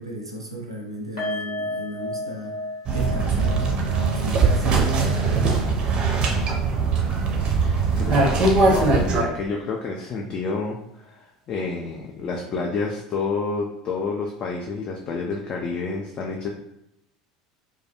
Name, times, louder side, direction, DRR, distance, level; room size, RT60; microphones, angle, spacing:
voice 1, 0.0-3.8 4.1-5.8, right 2 dB, 85° right, 0 dB, 0.5 m, -33 dB
sound 1, 1.2-8.4 8.6-8.8 9.2-9.3, left 1 dB, 75° left, 1.0 m, -36 dB
sound 2, 2.9-9.2, right 4 dB, 35° right, 0.5 m, -21 dB
voice 2, 7.5-16.5, left 4 dB, 35° left, 0 dB, 0.3 m, -29 dB
2.2 x 2.2 x 2.8 m, 0.82 s
figure-of-eight pair, 70°, 3 cm